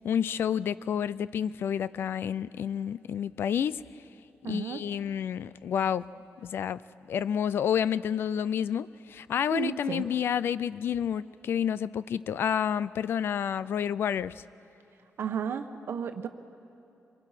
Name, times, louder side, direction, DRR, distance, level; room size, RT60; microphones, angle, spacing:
voice 1, 0.0-3.8 4.5-6.1 6.4-6.8 7.1-14.3, left 8 dB, 60° left, 18 dB, 0.4 m, -29 dB
voice 2, 4.4-4.8 9.5-10.0 15.2-16.3, right 7 dB, 65° right, 9 dB, 1.0 m, -33 dB
25.5 x 23.5 x 5.8 m, 2.8 s
wide cardioid pair, 175°, 4 cm